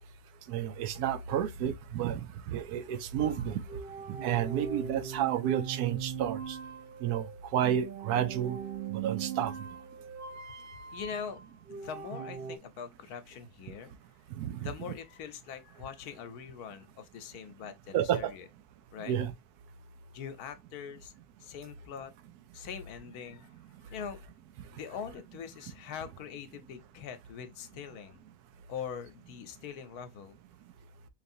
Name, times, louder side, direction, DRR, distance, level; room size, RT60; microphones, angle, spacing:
voice 1, 0.5-2.2 2.5-3.6 4.2-6.6 7.0-7.3 7.5-8.6 8.9-9.5 14.4-14.7 17.9-18.3 19.1-19.3, right 10 dB, 85° right, 1.1 m, -30 dB
sound 1, 3.2-12.6, right 8 dB, 65° right, 0.6 m, -40 dB
voice 2, 10.9-11.4 11.7-13.9 14.6-18.5 18.9-19.1 20.1-21.1 21.4-22.1 22.5-23.5 23.8-24.3 24.7-28.2 28.7-30.4, left 7 dB, 80° left, 1.2 m, -42 dB
4.6 x 3.2 x 2.6 m
omnidirectional pair, 1.6 m